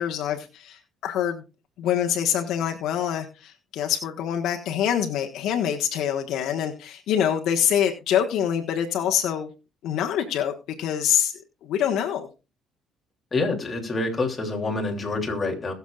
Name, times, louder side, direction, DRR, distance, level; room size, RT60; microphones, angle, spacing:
voice 1, 0.0-1.4 1.8-9.5 9.8-10.5 10.8-11.3 11.6-12.3, left 9 dB, 75° left, 1.4 m, -25 dB
voice 2, 13.3-15.7, left 3 dB, 25° left, 3.0 m, -27 dB
21.0 x 7.3 x 2.4 m
cardioid pair, 105°, 0 cm